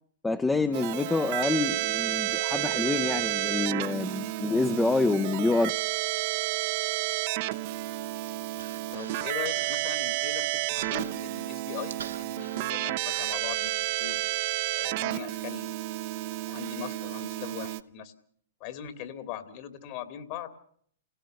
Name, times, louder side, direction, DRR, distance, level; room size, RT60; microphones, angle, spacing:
voice 1, 0.2-5.7, left 3 dB, 10° left, 10 dB, 0.8 m, -27 dB
Keyboard (musical), 0.7-17.8, right 17 dB, 50° right, 1.0 m, -31 dB
Human voice, 7.7-14.0, right 7 dB, 80° right, 1.3 m, -47 dB
voice 2, 8.9-13.7 14.0-14.2 14.7-15.7 16.5-18.1 18.6-20.5, left 10 dB, 50° left, 10 dB, 2.6 m, -40 dB
28.0 x 17.0 x 6.7 m, 0.63 s
hypercardioid pair, 120°, 0 cm